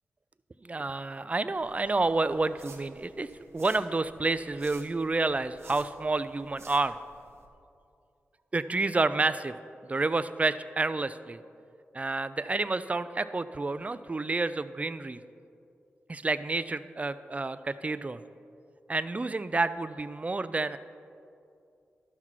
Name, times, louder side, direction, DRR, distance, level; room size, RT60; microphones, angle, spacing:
voice 1, 0.6-3.3 3.5-7.0 8.5-9.5 9.9-11.4 11.9-15.2 16.1-18.2 18.9-20.8, right 3 dB, 30° right, 14 dB, 0.4 m, -29 dB
sound 1, 1.5-7.5, right 4 dB, 75° right, 1.0 m, -54 dB
12.0 x 5.8 x 4.6 m, 2.5 s
cardioid pair, 50°, 5 cm